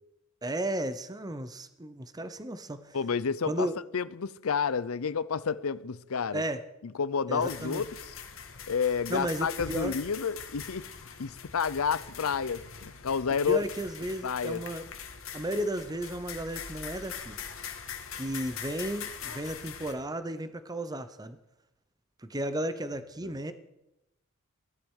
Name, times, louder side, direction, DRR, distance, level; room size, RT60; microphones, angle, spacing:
voice 1, 0.4-3.0 3.4-3.7 6.3-6.6 7.3-7.8 9.1-10.0 13.5-14.9 15.3-17.4 18.1-21.4 22.2-23.5, right 1 dB, 20° right, 0.8 m, -34 dB
voice 2, 2.9-3.7 3.9-6.4 7.0-7.9 8.7-10.9 11.2-13.6 14.2-14.6 23.2-23.3, left 6 dB, 80° left, 0.6 m, -30 dB
sound 1, 7.4-19.9, left 7 dB, 65° left, 1.9 m, -42 dB
17.0 x 12.0 x 6.4 m
head